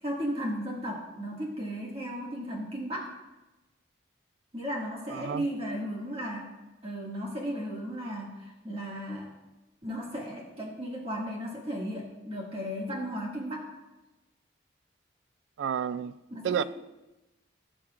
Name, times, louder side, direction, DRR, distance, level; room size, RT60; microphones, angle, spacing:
voice 1, 0.0-3.1 4.5-6.6 6.8-9.3 9.8-13.7 16.3-16.6, equal, 30° right, -4 dB, 2.0 m, -35 dB
voice 2, 5.1-5.5 15.6-16.1 16.4-16.6, right 8 dB, 80° right, 16 dB, 0.3 m, -30 dB
16.5 x 6.0 x 2.5 m, 1.0 s
head